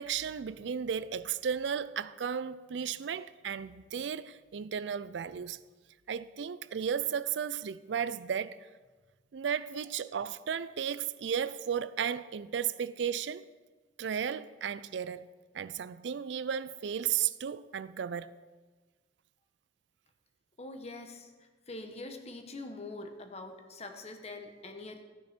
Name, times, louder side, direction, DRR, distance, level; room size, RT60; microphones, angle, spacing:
voice 1, 0.0-5.6 6.1-8.6 9.3-13.5 14.0-15.3 15.5-18.3, right 8 dB, 75° right, 0.4 m, -34 dB
voice 2, 20.6-25.0, left 2 dB, 35° left, 1.1 m, -44 dB
14.0 x 9.1 x 4.4 m
head